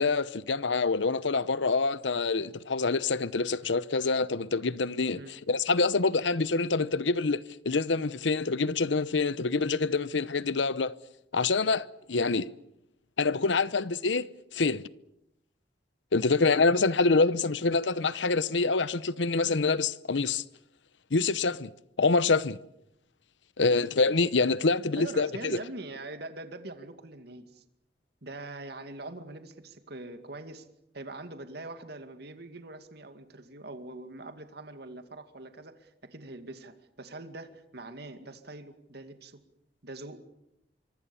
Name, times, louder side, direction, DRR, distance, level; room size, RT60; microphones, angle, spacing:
voice 1, 0.0-5.2 5.5-11.0 11.3-12.5 13.2-14.3 14.5-14.9 16.1-20.4 21.1-21.7 22.0-22.6 23.6-25.6, left 3 dB, 80° left, 0.9 m, -26 dB
voice 2, 25.0-27.6 28.2-30.7 30.9-39.4 39.8-40.2, right 2 dB, 60° right, 2.3 m, -43 dB
25.0 x 24.5 x 7.1 m
head